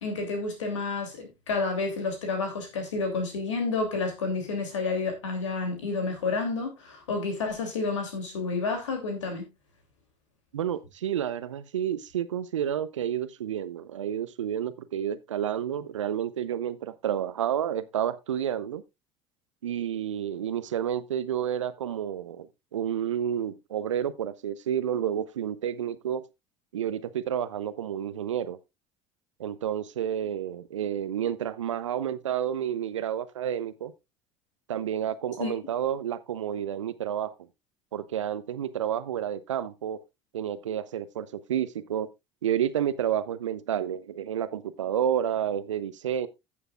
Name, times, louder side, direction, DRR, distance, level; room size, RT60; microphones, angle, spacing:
voice 1, 0.0-9.5 35.4-35.5, left 3 dB, 80° left, 2.9 m, -30 dB
voice 2, 10.5-18.8 19.6-22.5 22.7-26.2 26.7-28.6 29.4-33.9 34.7-37.3 37.9-40.0 40.3-42.1 42.4-46.3, right 9 dB, 80° right, 0.7 m, -30 dB
15.5 x 6.8 x 2.4 m
figure-of-eight pair, 65°, 16 cm